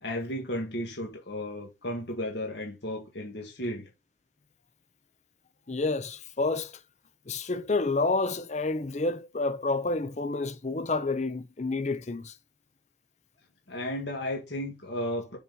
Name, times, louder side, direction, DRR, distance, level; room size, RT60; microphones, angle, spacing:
voice 1, 0.0-3.9 13.7-15.4, left 1 dB, 60° left, 2.0 m, -34 dB
voice 2, 5.7-6.7 7.3-12.3, left 3 dB, 35° left, 0.6 m, -29 dB
7.2 x 4.4 x 5.3 m
head